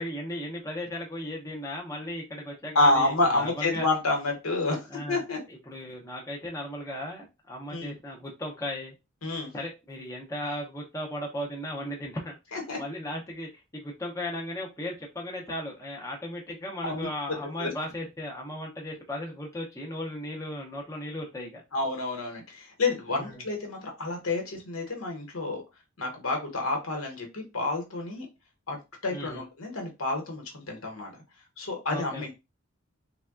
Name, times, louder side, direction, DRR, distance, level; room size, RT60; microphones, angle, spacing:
voice 1, 0.0-3.9 4.9-5.2 5.5-8.9 9.5-21.6 23.1-23.4 29.1-29.4 31.9-32.3, left 1 dB, 15° left, -1 dB, 0.6 m, -36 dB
voice 2, 2.7-5.4 7.7-7.9 9.2-9.5 12.5-12.8 16.8-17.1 17.6-17.7 21.7-25.6 26.0-28.3 28.7-28.8 29.0-31.1 31.6-32.3, left 2 dB, 80° left, 1 dB, 1.1 m, -29 dB
3.4 x 2.2 x 2.3 m, 0.25 s
head